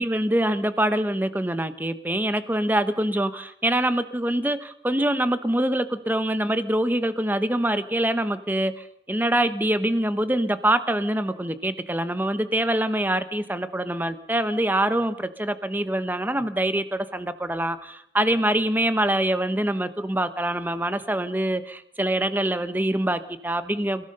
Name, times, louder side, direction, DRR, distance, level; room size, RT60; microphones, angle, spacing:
voice 1, 0.0-24.0, right 1 dB, 10° right, 1.1 m, -24 dB
29.5 x 17.0 x 5.5 m
head